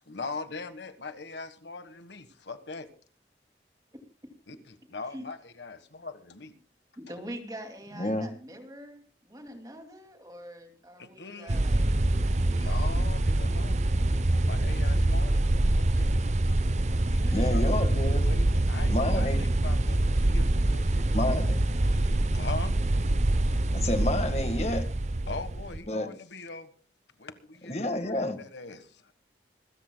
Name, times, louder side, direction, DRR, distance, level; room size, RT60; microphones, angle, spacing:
voice 1, 0.1-2.9 4.5-6.5 11.0-11.7 12.5-13.8 14.4-16.2 17.0-17.2 17.5-18.0 18.2-21.1 21.9-22.8 25.3-26.7 27.2-29.1, left 3 dB, 85° left, 1.5 m, -41 dB
voice 2, 7.0-12.0 12.4-13.2 17.1-17.7, equal, 20° right, 2.4 m, -44 dB
voice 3, 8.0-8.3 17.3-18.3 18.9-19.4 21.1-21.6 23.7-24.8 25.9-26.1 27.7-28.4, left 1 dB, 35° left, 1.6 m, -29 dB
sound 1, 11.5-25.8, right 1 dB, 40° right, 0.6 m, -25 dB
26.0 x 14.0 x 2.2 m
head